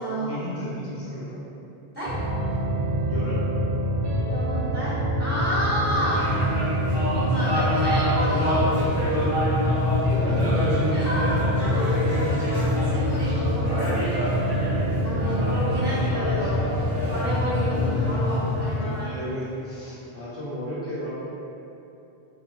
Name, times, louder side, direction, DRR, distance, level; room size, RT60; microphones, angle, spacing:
voice 1, 0.0-1.4 3.1-3.5 6.1-6.2 10.1-11.0 15.8-16.5 17.9-18.0 18.6-21.1, left 1 dB, 15° left, -11 dB, 0.7 m, -34 dB
sound 1, 2.0-18.0, equal, 55° right, 0.3 m, -29 dB
sound 2, 2.1-18.7, left 1 dB, 80° right, 0.8 m, -27 dB
voice 2, 4.3-6.2 7.1-8.6 10.9-14.4 15.0-16.6 17.1-19.1, equal, 10° right, -15 dB, 1.0 m, -30 dB
sound 3, 5.8-19.5, equal, 40° right, 1.5 m, -29 dB
2.7 x 2.4 x 2.5 m, 2.8 s
omnidirectional pair, 1.0 m